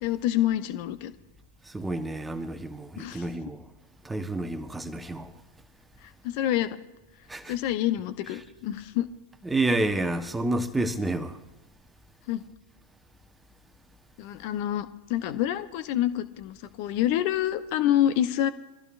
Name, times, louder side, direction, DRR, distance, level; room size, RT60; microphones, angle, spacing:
voice 1, 0.0-1.1 3.0-3.3 6.0-6.8 7.5-9.1 12.3-12.4 14.2-18.5, left 12 dB, 45° left, 1.0 m, -27 dB
voice 2, 1.7-3.6 4.0-5.3 7.3-7.5 9.4-11.4, right 2 dB, 10° right, 1.1 m, -29 dB
24.0 x 15.0 x 2.6 m
figure-of-eight pair, 90°, 0 cm